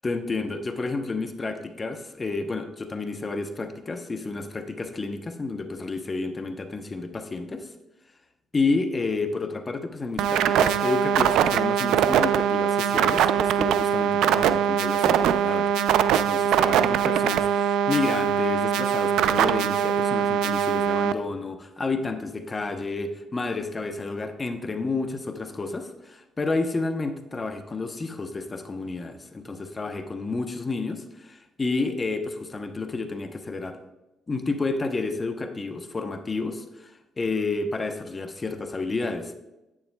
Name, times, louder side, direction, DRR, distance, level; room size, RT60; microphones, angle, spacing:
voice 1, 0.0-7.7 8.5-15.7 16.1-33.8 34.3-39.4, left 3 dB, 30° left, 7 dB, 0.8 m, -30 dB
sound 1, 10.2-21.1, right 9 dB, 85° right, 0.3 m, -22 dB
9.6 x 8.5 x 2.3 m, 0.96 s
cardioid pair, 90°, 0 cm